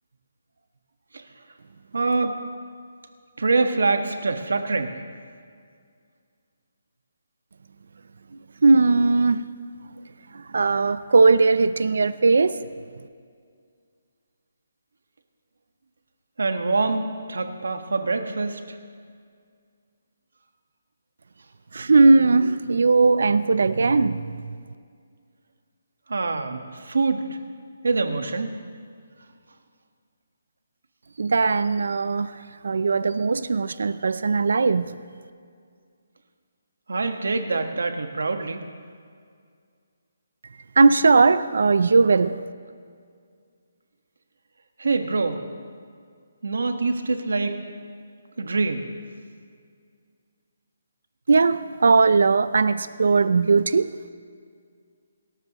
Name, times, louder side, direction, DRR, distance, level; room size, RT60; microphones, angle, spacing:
voice 1, 1.9-2.4 3.4-4.9 16.4-18.6 26.1-27.3 27.8-28.6 36.9-38.6 44.8-45.4 46.4-47.6 48.4-48.9, right 3 dB, 90° right, 1.5 m, -24 dB
voice 2, 8.6-9.5 10.5-12.6 21.7-24.3 31.2-32.3 32.6-34.9 40.8-42.4 51.3-53.9, right 4 dB, 70° right, 0.5 m, -18 dB
24.5 x 13.5 x 3.1 m
hypercardioid pair, 170°, 0 cm